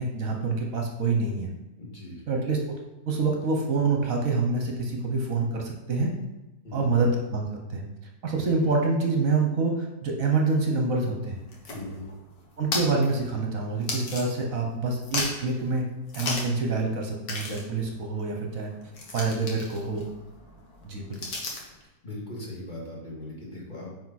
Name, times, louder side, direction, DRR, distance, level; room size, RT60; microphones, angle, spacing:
voice 1, 0.0-1.5 2.3-2.8 3.1-6.1 6.7-7.8 8.2-11.4 12.6-15.8 16.1-18.7 19.1-20.1 20.8-21.2, right 3 dB, 55° right, 0 dB, 1.4 m, -26 dB
voice 2, 1.8-2.2 6.6-7.1 11.7-12.1 22.0-23.9, left 1 dB, 25° left, -5 dB, 2.4 m, -39 dB
sound 1, 11.3-14.7 15.0-15.6 16.1-16.6 16.9-17.0 17.3-21.8, left 3 dB, 70° left, 2.1 m, -36 dB
9.3 x 4.8 x 4.2 m, 1.0 s
omnidirectional pair, 1.9 m